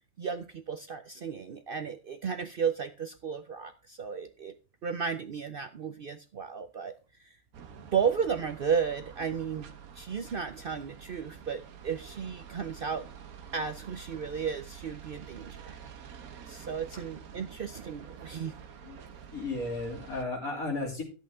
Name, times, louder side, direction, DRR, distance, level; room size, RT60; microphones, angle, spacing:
voice 1, 0.2-4.5 4.8-7.4 7.9-13.1 13.5-15.8 16.5-18.5, right 6 dB, 55° right, 9 dB, 0.6 m, -34 dB
sound 1, 7.5-20.2, right 8 dB, 80° right, 1.4 m, -48 dB
voice 2, 19.3-21.0, left 2 dB, 75° left, 0 dB, 3.3 m, -34 dB
11.0 x 8.0 x 3.6 m, 0.33 s
omnidirectional pair, 1.5 m